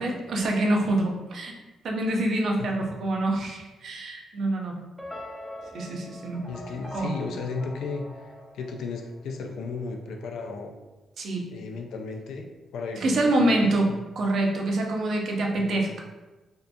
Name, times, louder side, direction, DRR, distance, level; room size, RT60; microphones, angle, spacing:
voice 1, 0.0-1.5 1.8-4.8 5.7-6.5 6.9-7.1 11.2-11.5 13.0-16.0, right 1 dB, 60° right, 0 dB, 0.4 m, -26 dB
sound 1, 5.0-9.3, left 1 dB, 5° left, 0.3 m, -42 dB
voice 2, 6.5-10.7 11.5-14.0 15.6-15.9, left 4 dB, 90° left, 3 dB, 0.3 m, -35 dB
2.7 x 2.4 x 2.2 m, 1.1 s
cardioid pair, 150°, 0 cm